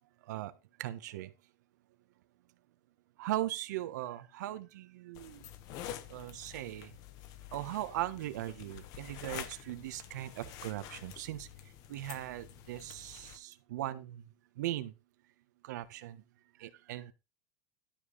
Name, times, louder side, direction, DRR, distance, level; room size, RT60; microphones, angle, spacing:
voice 1, 0.8-1.3 3.2-5.4 6.1-6.9 7.5-11.5 11.9-14.2 14.6-14.9 15.6-16.2 16.6-17.1, right 14 dB, 85° right, 1.3 m, -39 dB
sound 1, 5.1-13.4, left 11 dB, 40° left, 1.0 m, -48 dB
12.0 x 5.2 x 5.6 m
supercardioid pair, 165°, 9 cm